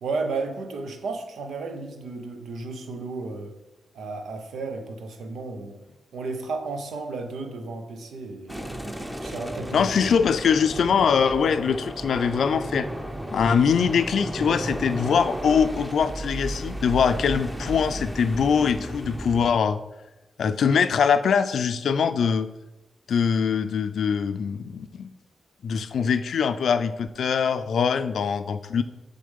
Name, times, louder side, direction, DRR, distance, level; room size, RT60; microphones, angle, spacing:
voice 1, 0.0-3.6 3.9-5.8 6.1-8.6 9.2-10.1, right 3 dB, 90° right, 5 dB, 0.8 m, -33 dB
sound 1, 8.5-19.5, right 1 dB, 5° right, 0.8 m, -34 dB
voice 2, 9.7-12.9 13.3-19.8 20.4-22.5 23.1-25.1 25.6-28.8, left 6 dB, 80° left, 11 dB, 0.4 m, -23 dB
6.6 x 3.9 x 5.3 m, 1.0 s
cardioid pair, 75°, 0 cm